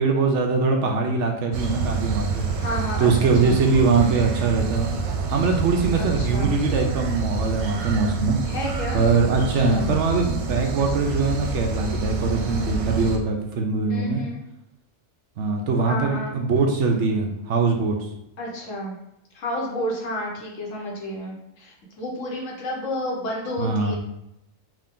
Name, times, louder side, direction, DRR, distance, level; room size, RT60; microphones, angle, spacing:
voice 1, 0.0-2.5 3.0-4.9 5.3-8.4 8.9-14.2 15.4-18.0 23.6-24.0, right 4 dB, 65° right, 2 dB, 0.8 m, -22 dB
sound 1, 1.5-13.2, right 5 dB, 90° right, 1.0 m, -27 dB
voice 2, 2.5-3.6 6.0-6.6 8.5-9.0 9.4-9.9 13.9-14.4 15.9-16.4 18.4-19.0 19.3-24.0, equal, 70° left, -2 dB, 1.3 m, -31 dB
3.7 x 2.5 x 3.6 m, 0.84 s
omnidirectional pair, 1.4 m